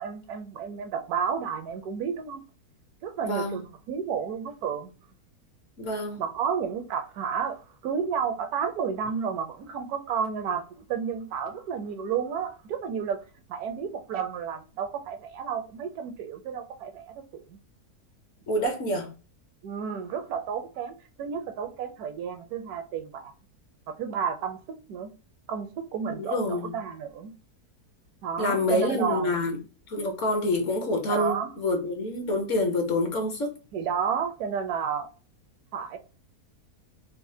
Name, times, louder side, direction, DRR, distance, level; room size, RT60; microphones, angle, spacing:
voice 1, 0.0-2.4 3.0-4.9 6.2-10.6 10.9-13.2 13.5-17.6 19.6-23.3 23.9-24.6 24.9-25.1 25.5-27.3 28.2-29.4 31.1-31.5 33.7-35.1 35.7-36.0, right 7 dB, 75° right, 1.0 m, -31 dB
voice 2, 3.2-3.6 5.8-6.2 18.5-19.1 26.2-26.7 28.4-29.6 29.9-33.5, left 1 dB, 60° left, 1.0 m, -27 dB
4.2 x 2.1 x 2.6 m
omnidirectional pair, 1.7 m